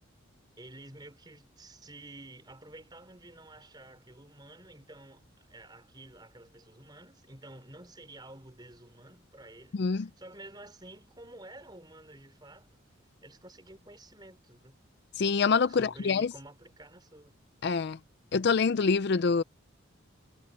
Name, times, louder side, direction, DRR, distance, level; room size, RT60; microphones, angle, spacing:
voice 1, 0.6-12.8 13.2-14.8 15.7-17.3, right 2 dB, 20° right, 4.3 m, -50 dB
voice 2, 9.7-10.1 15.2-16.3 17.6-18.0 18.3-19.4, left 5 dB, 55° left, 0.4 m, -25 dB
head